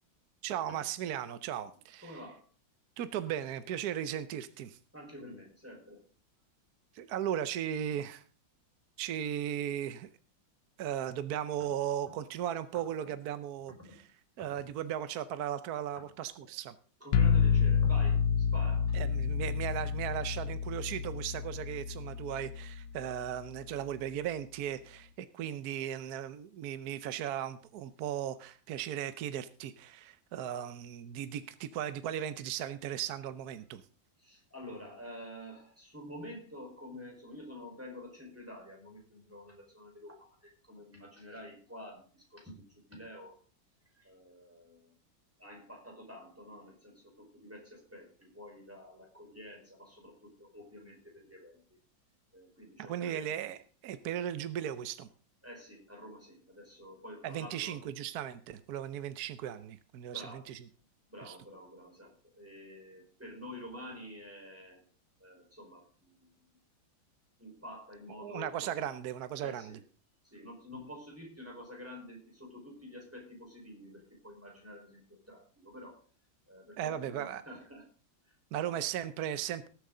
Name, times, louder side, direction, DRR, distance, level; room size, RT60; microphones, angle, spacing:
voice 1, 0.4-2.2 3.0-4.8 6.9-8.2 9.0-10.1 10.8-13.7 14.4-16.7 18.9-33.8 52.9-55.1 57.2-60.6 61.2-61.4 68.2-69.7 76.8-77.4 78.5-79.7, right 10 dB, 65° right, 12 dB, 1.1 m, -37 dB
voice 2, 2.0-2.4 4.9-6.1 13.8-14.0 14.4-14.5 17.0-19.0 34.2-43.4 44.0-44.9 45.4-51.6 52.3-53.3 55.4-57.9 60.1-60.4 61.1-64.8 65.2-66.3 67.4-68.8 69.4-69.8 70.2-76.0 76.5-77.9 78.2-78.4 78.6-78.8, left 1 dB, 5° right, 0 dB, 4.4 m, -49 dB
sound 1, 17.1-22.9, left 7 dB, 70° left, 1.4 m, -29 dB
19.0 x 8.2 x 3.8 m, 0.39 s
omnidirectional pair, 2.1 m